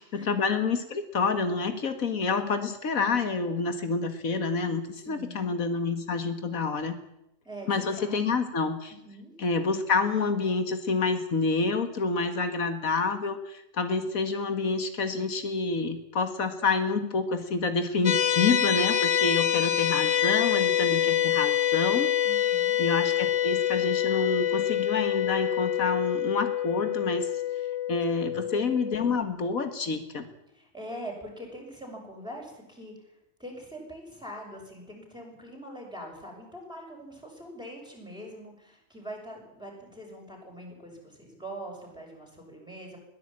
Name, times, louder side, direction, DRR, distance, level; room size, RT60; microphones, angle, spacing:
voice 1, 0.1-6.9 7.7-8.9 9.4-22.3 22.8-27.3 27.9-30.3, left 4 dB, 85° left, 9 dB, 2.1 m, -28 dB
voice 2, 5.0-5.5 7.4-8.2 8.9-9.3 22.2-22.8 28.3-28.5 30.5-43.0, right 1 dB, 5° right, -1 dB, 6.5 m, -43 dB
sound 1, 18.1-29.2, left 11 dB, 70° left, 1.4 m, -26 dB
21.0 x 15.5 x 8.9 m, 0.83 s
omnidirectional pair, 1.4 m